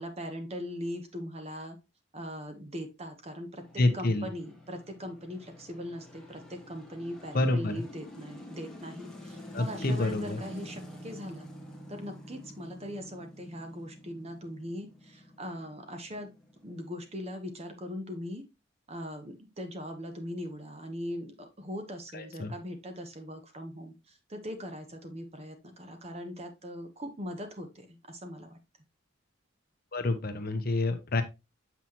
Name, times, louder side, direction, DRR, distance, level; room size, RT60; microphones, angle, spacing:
voice 1, 0.0-1.8 2.1-11.5 11.9-16.3 16.6-18.4 18.9-28.6, equal, 30° right, 6 dB, 1.1 m, -40 dB
sound 1, 3.6-17.9, equal, 5° left, 1.4 m, -48 dB
voice 2, 3.8-4.2 7.3-7.8 9.5-10.4 22.1-22.5 29.9-31.2, left 2 dB, 45° left, 8 dB, 0.9 m, -28 dB
7.1 x 5.8 x 2.9 m, 0.24 s
head